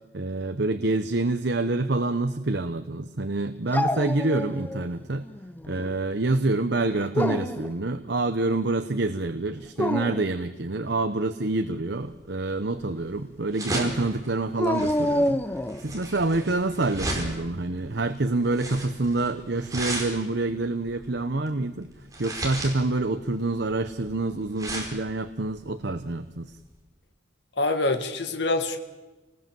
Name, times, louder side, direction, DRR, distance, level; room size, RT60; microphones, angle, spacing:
voice 1, 0.1-5.3 5.7-21.9 22.2-26.6, right 2 dB, 55° right, 10 dB, 0.9 m, -27 dB
Dog, 3.7-4.9 5.2-5.9 6.9-7.7 9.6-10.3 14.6-15.9, left 1 dB, 10° left, 0.7 m, -27 dB
sound 1, 12.0-26.8, right 1 dB, 15° right, 4.6 m, -36 dB
voice 2, 27.6-28.8, left 2 dB, 55° left, 6 dB, 1.7 m, -25 dB
28.0 x 19.5 x 7.7 m, 1.2 s
head